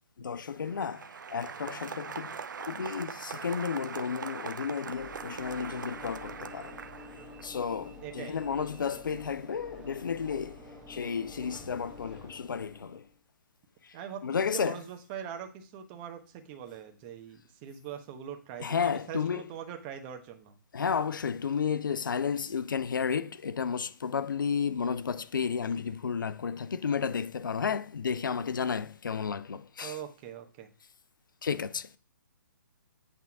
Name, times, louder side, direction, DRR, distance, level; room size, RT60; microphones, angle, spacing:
voice 1, 0.2-6.8 7.4-10.6 10.9-13.1 13.8-14.0 14.2-14.8 18.6-19.5 20.7-30.0 31.4-32.0, left 6 dB, 75° left, 0.5 m, -32 dB
Applause, 0.5-7.4, right 6 dB, 70° right, 0.7 m, -41 dB
Train / Engine / Alarm, 4.9-13.1, left 2 dB, 5° right, 1.2 m, -48 dB
voice 2, 8.0-8.4 13.9-14.2 14.5-20.5 29.8-30.7, right 9 dB, 30° right, 1.1 m, -42 dB
8.3 x 3.5 x 6.0 m
figure-of-eight pair, 135°, 11 cm